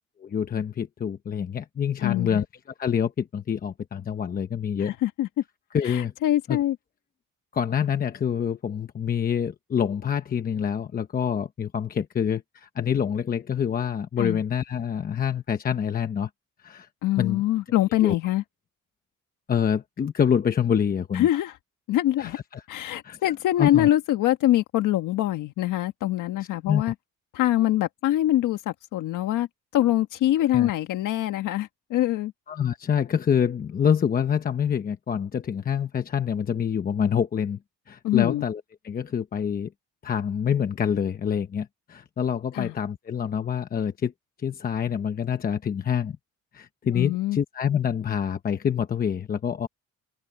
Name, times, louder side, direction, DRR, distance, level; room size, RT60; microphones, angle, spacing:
voice 1, 0.2-2.4 2.8-4.9 5.7-6.1 6.5-6.6 7.5-16.3 16.6-16.9 17.2-17.4 18.0-18.1 19.5-21.3 22.2-22.6 23.0-23.2 23.6-23.9 26.6-26.9 30.5-30.7 32.5-37.6 37.9-39.7 40.0-44.1 44.4-46.2 46.5-49.7, left 8 dB, 30° left, 1.0 m, -26 dB
voice 2, 2.0-2.4 4.8-5.3 5.8-6.7 14.2-14.4 17.0-18.4 21.1-21.5 21.9-22.4 22.7-26.9 27.3-29.5 29.7-32.3 38.0-38.4 42.5-42.7 46.9-47.4, left 14 dB, 80° left, 1.5 m, -24 dB
cardioid pair, 170°, 31 cm